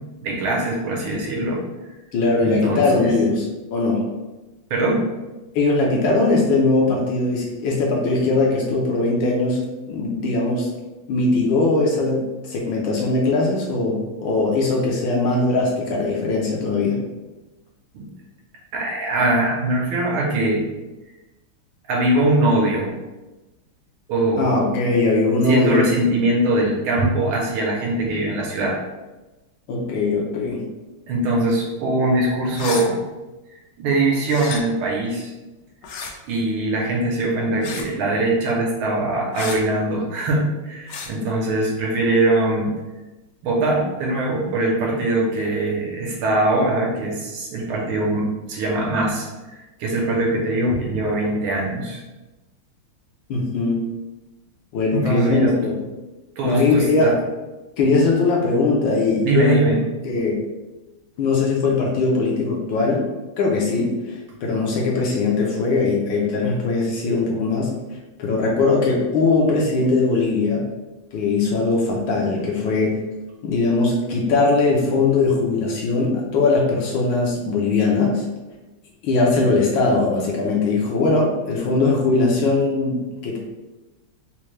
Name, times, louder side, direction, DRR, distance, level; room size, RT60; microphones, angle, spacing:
voice 1, 0.2-1.6 2.4-3.1 4.7-5.0 17.9-18.1 18.7-20.6 21.9-22.9 24.1-24.5 25.4-28.7 31.1-33.0 33.8-35.3 36.2-42.7 43.4-52.0 54.8-55.6 56.4-57.1 59.2-59.8, right 2 dB, 75° right, -2 dB, 1.6 m, -22 dB
voice 2, 2.1-4.0 5.5-9.6 9.9-10.7 11.1-12.2 12.5-17.0 24.4-25.8 29.7-30.6 53.3-53.8 54.7-55.7 56.4-57.1 57.8-59.6 60.0-60.4 61.2-63.0 63.4-67.7 68.2-70.7 71.1-73.0 73.4-78.2 79.0-83.0 83.2-83.4, left 3 dB, 70° left, -2 dB, 1.3 m, -20 dB
sound 1, 32.5-32.9 34.3-34.6 35.8-36.1 37.6-37.9 39.3-39.6 40.9-41.1, left 5 dB, 90° left, 0.9 m, -31 dB
4.3 x 2.2 x 3.1 m, 1.1 s
omnidirectional pair, 2.4 m